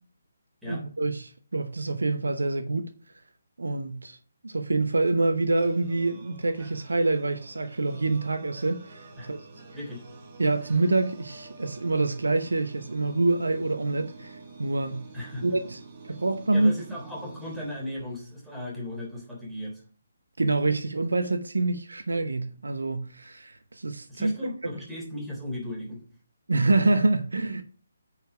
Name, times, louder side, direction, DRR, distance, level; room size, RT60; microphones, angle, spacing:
voice 1, 0.7-2.9 3.6-4.2 4.4-9.4 10.4-15.1 15.4-15.8 16.1-16.7 20.4-24.1 26.5-27.6, right 2 dB, 70° right, 0.9 m, -26 dB
sound 1, 5.5-18.5, right 3 dB, 35° right, 1.8 m, -48 dB
voice 2, 9.7-10.1 15.1-15.6 16.5-19.8 24.1-26.0, equal, 5° right, 3.5 m, -35 dB
9.1 x 5.0 x 4.8 m
figure-of-eight pair, 145°, 0 cm